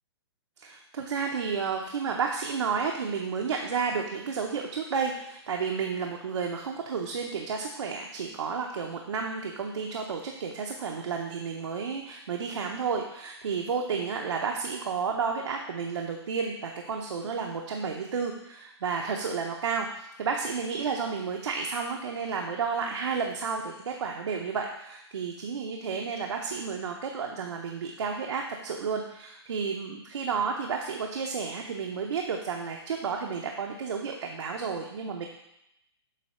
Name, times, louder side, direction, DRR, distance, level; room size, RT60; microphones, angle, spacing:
voice 1, 0.6-35.3, right 5 dB, 80° right, 1 dB, 0.8 m, -31 dB
7.5 x 2.8 x 5.5 m, 0.83 s
hypercardioid pair, 155°, 14 cm